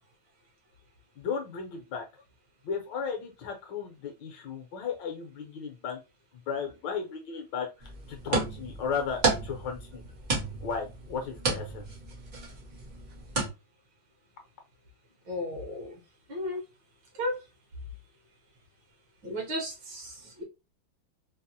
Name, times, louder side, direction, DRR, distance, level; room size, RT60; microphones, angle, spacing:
voice 1, 1.2-2.0 2.6-6.0 6.3-10.0 10.6-11.9, left 6 dB, 70° left, 1.3 m, -35 dB
sound 1, 7.8-13.5, right 3 dB, 85° right, 0.4 m, -32 dB
voice 2, 15.3-15.9 16.3-16.6 17.2-17.3 19.2-20.4, left 1 dB, 65° right, 1.7 m, -34 dB
4.0 x 2.0 x 2.6 m
omnidirectional pair, 2.3 m